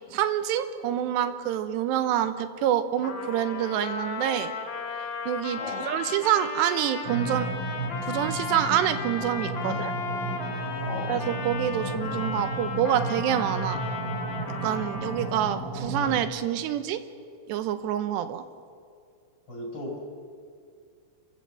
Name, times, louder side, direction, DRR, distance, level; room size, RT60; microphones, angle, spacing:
voice 1, 0.1-4.5 5.3-7.5 8.1-9.9 11.1-13.8 14.6-17.0 17.5-18.4, right 10 dB, 90° right, 10 dB, 3.1 m, -27 dB
Trumpet, 3.0-15.5, left 4 dB, 45° left, 2.6 m, -35 dB
voice 2, 5.6-5.9 9.6-9.9 10.9-11.2 19.5-20.0, left 2 dB, 30° left, -1 dB, 5.8 m, -36 dB
sound 1, 7.0-16.2, right 2 dB, 40° right, 1.7 m, -33 dB
28.0 x 15.0 x 7.7 m, 2.3 s
omnidirectional pair, 4.9 m